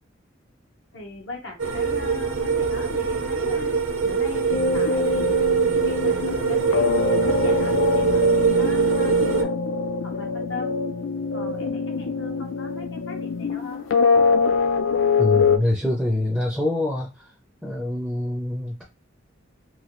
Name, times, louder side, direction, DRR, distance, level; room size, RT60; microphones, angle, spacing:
voice 1, 0.9-3.8 4.0-5.4 5.8-9.5 10.0-10.8 11.3-13.8, left 3 dB, 70° left, 0.8 m, -39 dB
sound 1, 1.6-9.4, right 5 dB, 80° right, 0.6 m, -23 dB
sound 2, 4.5-15.6, left 4 dB, 90° left, 0.4 m, -24 dB
voice 2, 15.2-17.1 17.6-18.8, left 1 dB, ahead, 0.5 m, -25 dB
3.1 x 2.3 x 2.9 m
head